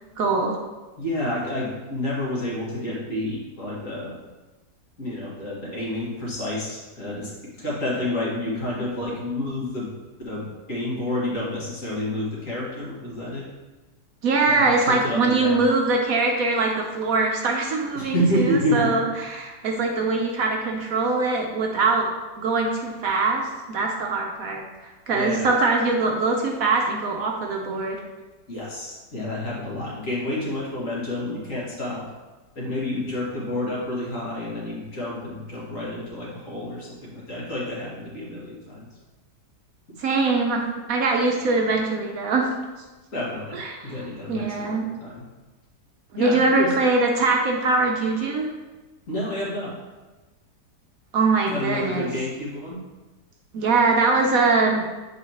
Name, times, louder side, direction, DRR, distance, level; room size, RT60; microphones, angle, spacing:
voice 1, 0.2-0.6 14.2-22.1 22.4-28.0 40.0-40.6 40.9-42.5 43.5-43.8 44.3-44.8 46.1-48.5 51.1-52.1 53.5-54.8, right 3 dB, 65° right, 1 dB, 1.0 m, -22 dB
voice 2, 1.0-4.2 5.0-7.3 7.6-9.9 10.2-13.4 14.6-15.6 17.9-18.9 25.1-25.5 28.5-32.0 32.6-38.8 43.1-45.2 46.2-46.7 49.1-49.8 51.5-52.8, left 1 dB, 50° left, -6 dB, 2.1 m, -29 dB
7.3 x 5.5 x 2.9 m, 1.2 s
omnidirectional pair, 1.8 m